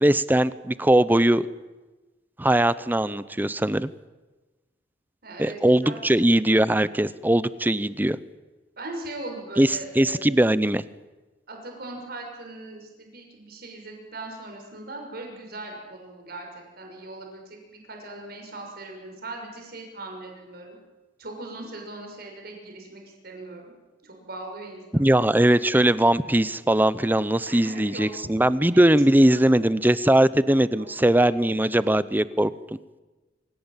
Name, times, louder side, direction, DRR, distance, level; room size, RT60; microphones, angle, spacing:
voice 1, 0.0-1.5 2.4-3.9 5.4-8.2 9.6-10.8 24.9-32.5, right 1 dB, 10° right, 16 dB, 0.7 m, -20 dB
voice 2, 5.2-6.3 8.8-10.2 11.5-20.8 21.2-23.7 24.0-25.1 27.5-28.1 28.7-28.8 29.2-29.8 30.7-30.9, right 2 dB, 55° right, 2 dB, 6.3 m, -40 dB
26.0 x 17.0 x 9.0 m, 1.2 s
head